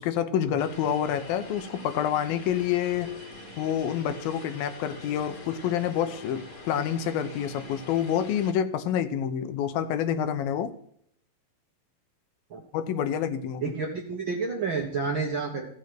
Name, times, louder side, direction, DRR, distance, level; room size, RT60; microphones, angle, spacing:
voice 1, 0.0-3.1 3.6-10.7 12.7-13.7, left 9 dB, 80° left, 10 dB, 2.7 m, -28 dB
Vehicle, 0.6-8.5, left 2 dB, 40° left, 3.3 m, -44 dB
voice 2, 13.6-15.7, right 4 dB, 60° right, 0 dB, 1.4 m, -29 dB
15.0 x 6.3 x 6.0 m, 0.68 s
omnidirectional pair, 4.1 m